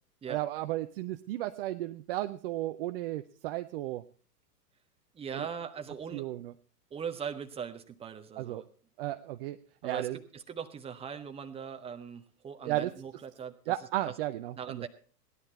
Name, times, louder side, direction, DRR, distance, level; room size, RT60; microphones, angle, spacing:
voice 1, 0.3-4.0 5.3-5.5 6.1-6.5 8.4-8.6 9.0-9.6 9.8-10.2 12.7-12.9 13.7-14.9, right 15 dB, 35° right, 8 dB, 0.6 m, -34 dB
voice 2, 5.1-6.3 6.9-8.6 9.8-13.7 14.0-14.1 14.6-14.9, right 7 dB, 10° right, 8 dB, 0.9 m, -40 dB
17.0 x 11.0 x 4.2 m, 0.41 s
hypercardioid pair, 110°, 48 cm